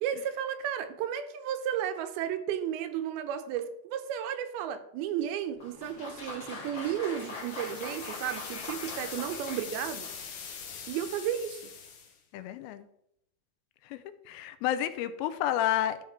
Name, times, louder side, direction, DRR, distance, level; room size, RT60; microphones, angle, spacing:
voice 1, 0.0-10.1 10.9-11.7, right 10 dB, 90° right, 2.5 m, -33 dB
Applause, 5.5-10.4, left 3 dB, 40° left, 2.0 m, -42 dB
sound 1, 7.1-12.2, left 7 dB, 65° left, 2.4 m, -43 dB
voice 2, 12.3-12.9 13.8-16.0, left 12 dB, 85° left, 2.3 m, -31 dB
12.5 x 4.3 x 3.5 m
omnidirectional pair, 4.4 m